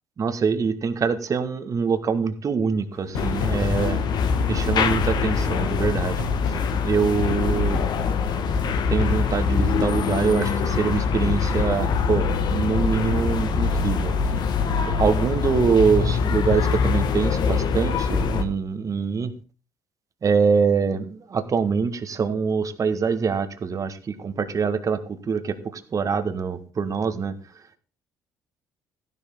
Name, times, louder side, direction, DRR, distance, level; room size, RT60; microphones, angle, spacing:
voice 1, 0.2-4.0 4.5-6.2 6.8-7.9 8.9-14.1 15.0-19.3 20.2-25.0 25.3-27.3, right 5 dB, 40° right, 9 dB, 1.8 m, -24 dB
sound 1, 2.9-10.7, left 2 dB, 85° left, 3.9 m, -34 dB
sound 2, 3.1-18.4, left 5 dB, 60° left, 1.6 m, -23 dB
15.0 x 11.0 x 3.8 m, 0.34 s
hypercardioid pair, 55°, 8 cm